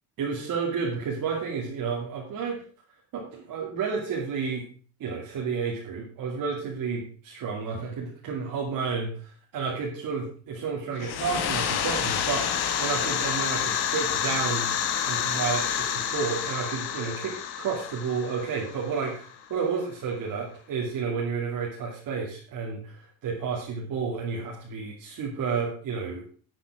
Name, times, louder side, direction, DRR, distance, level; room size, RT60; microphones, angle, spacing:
voice 1, 0.2-2.6 3.1-4.7 5.0-14.7 15.1-26.2, right 5 dB, 50° right, -3 dB, 2.5 m, -31 dB
sound 1, 11.0-19.5, left 8 dB, 60° left, 1.6 m, -29 dB
11.5 x 7.7 x 4.8 m, 0.42 s
cardioid pair, 155°, 44 cm